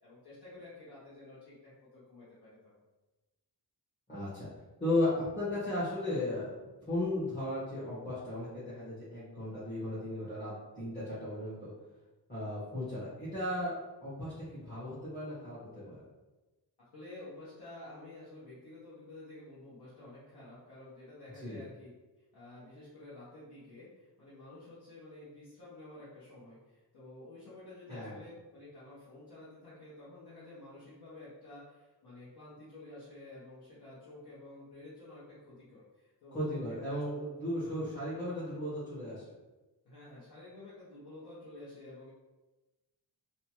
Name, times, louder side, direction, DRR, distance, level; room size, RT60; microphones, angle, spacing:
voice 1, 0.0-2.7 16.9-21.9 22.3-37.0 37.6-37.7 39.8-42.1, left 2 dB, 60° left, -11 dB, 0.9 m, -51 dB
voice 2, 4.1-4.5 4.8-6.5 6.9-11.7 12.3-13.7 14.0-16.0 21.3-21.6 27.9-28.2 36.3-39.2, left 1 dB, 20° left, -12 dB, 0.9 m, -35 dB
2.7 x 2.2 x 2.9 m, 1.1 s
wide cardioid pair, 180°, 43 cm